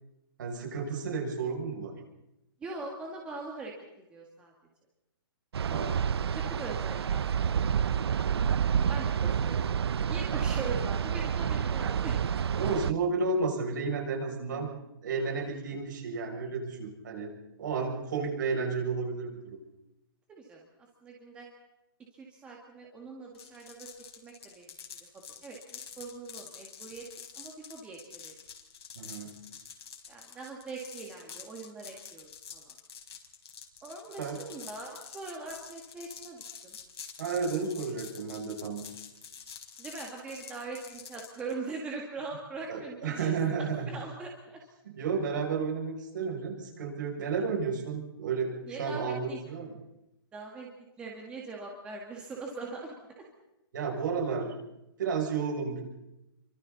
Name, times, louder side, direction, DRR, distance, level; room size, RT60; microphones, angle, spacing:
voice 1, 0.4-2.0 5.6-5.9 12.5-14.7 15.0-17.3 17.6-19.6 29.0-29.3 34.2-34.4 37.2-38.8 42.7-43.9 44.9-48.5 48.8-49.7 53.7-54.5 55.0-55.8, right 5 dB, 50° right, 1 dB, 7.1 m, -32 dB
voice 2, 2.6-3.7 4.1-4.5 6.3-8.4 8.9-9.6 10.1-12.2 20.3-20.7 21.0-21.5 22.1-23.9 24.2-24.7 25.4-27.1 27.3-28.3 30.1-32.7 33.8-36.8 39.8-44.6 48.6-49.4 50.3-50.7 51.0-53.3, right 3 dB, 10° right, -1 dB, 1.9 m, -42 dB
sound 1, 5.5-12.9, right 7 dB, 80° right, 0.7 m, -29 dB
sound 2, 23.3-41.5, left 7 dB, 85° left, 4.9 m, -47 dB
30.0 x 24.5 x 4.2 m, 0.90 s
hypercardioid pair, 180°, 13 cm